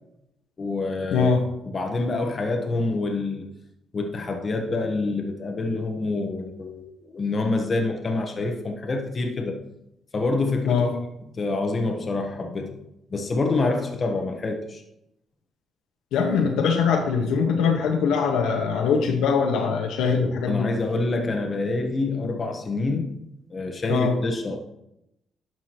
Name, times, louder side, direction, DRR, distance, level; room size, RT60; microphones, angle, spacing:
voice 1, 0.6-1.3 1.6-3.5 3.9-9.6 10.1-10.8 11.3-12.8 13.1-14.8 20.5-23.1 23.5-24.6, left 3 dB, 35° left, 1.1 m, -26 dB
voice 2, 1.1-1.4 10.7-10.9 16.1-20.7 23.9-24.1, left 5 dB, 90° left, 1.4 m, -22 dB
11.0 x 6.1 x 3.0 m
cardioid pair, 90°, 0 cm